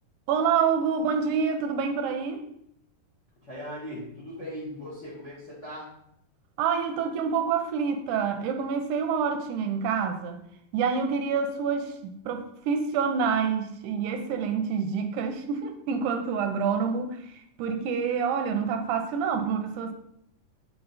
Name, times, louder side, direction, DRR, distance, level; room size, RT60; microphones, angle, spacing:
voice 1, 0.3-2.5 6.6-10.4 10.7-19.9, right 6 dB, 80° right, 6 dB, 2.0 m, -27 dB
voice 2, 3.4-5.9, equal, 45° left, -5 dB, 1.0 m, -39 dB
6.8 x 3.9 x 4.0 m, 0.74 s
omnidirectional pair, 3.7 m